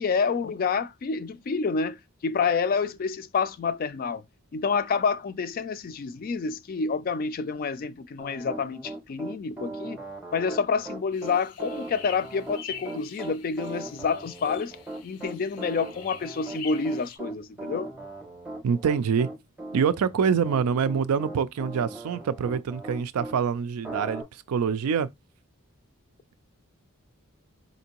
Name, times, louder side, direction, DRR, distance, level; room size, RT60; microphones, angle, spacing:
voice 1, 0.0-2.0 2.2-4.2 4.5-10.0 10.3-14.7 15.0-17.9, left 5 dB, 40° left, 0.3 m, -28 dB
Piano, 8.2-23.4 23.8-24.2, right 2 dB, 5° right, 0.6 m, -39 dB
sound 1, 11.1-17.2, left 7 dB, 90° left, 0.6 m, -45 dB
voice 2, 18.6-19.3 19.7-25.1, right 6 dB, 85° right, 0.4 m, -25 dB
4.3 x 2.6 x 2.9 m
head